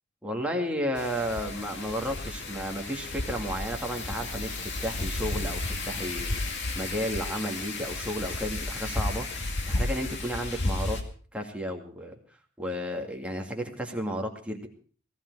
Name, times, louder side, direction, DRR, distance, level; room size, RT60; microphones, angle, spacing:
voice 1, 0.2-6.4 6.7-11.0 11.3-12.1 12.6-14.7, equal, 5° right, 2 dB, 2.4 m, -33 dB
Wind, 1.0-11.0, left 2 dB, 55° left, 2.1 m, -33 dB
18.0 x 15.0 x 4.8 m, 0.42 s
head